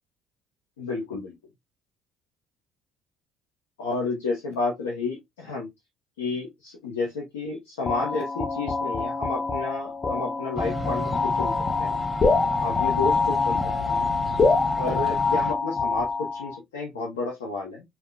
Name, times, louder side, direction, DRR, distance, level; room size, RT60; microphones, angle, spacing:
voice 1, 0.8-1.3 3.8-5.7 6.2-11.5 11.8-12.1 12.6-13.6 13.9-14.1 14.8-17.8, left 3 dB, 85° left, 0.8 m, -31 dB
sound 1, 7.9-16.6, left 4 dB, 30° left, 0.4 m, -25 dB
sound 2, 10.6-15.5, equal, 10° right, 1.1 m, -35 dB
3.6 x 2.3 x 2.2 m
hypercardioid pair, 60°, 0 cm